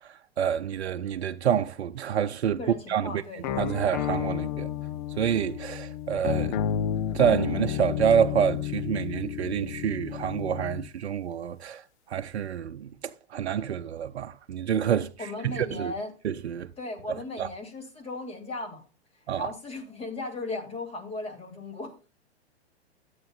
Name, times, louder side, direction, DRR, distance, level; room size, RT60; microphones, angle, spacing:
voice 1, 0.4-2.6 2.9-3.2 3.6-4.7 5.2-6.6 7.1-11.8 12.1-15.9 16.2-16.7 17.4-17.5 19.3-19.5, right 8 dB, 75° right, 0.6 m, -27 dB
voice 2, 2.6-3.4 15.2-16.1 16.8-18.9 19.4-22.1, left 2 dB, 20° left, 2.7 m, -36 dB
sound 1, 3.4-10.9, left 10 dB, 45° left, 0.7 m, -31 dB
13.0 x 8.2 x 2.4 m
figure-of-eight pair, 110°, 33 cm